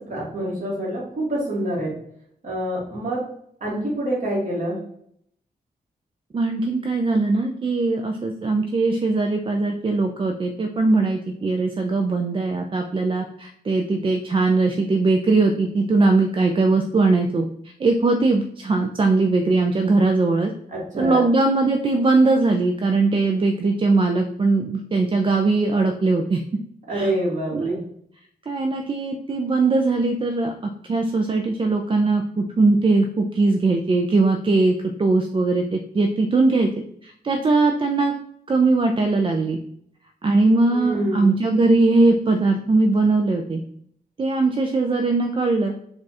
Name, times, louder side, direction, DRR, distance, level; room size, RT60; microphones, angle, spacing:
voice 1, 0.0-1.9 2.4-3.2 3.6-4.8 20.7-21.2 26.9-27.8 40.7-41.3, right 1 dB, 50° right, -5 dB, 1.8 m, -26 dB
voice 2, 6.3-17.5 17.8-20.5 21.0-26.4 26.9-27.1 27.5-27.8 28.5-36.7 37.0-38.1 38.5-39.6 40.2-43.6 44.2-45.7, right 3 dB, 30° right, 3 dB, 0.4 m, -20 dB
4.9 x 2.4 x 4.1 m, 0.69 s
wide cardioid pair, 145°, 16 cm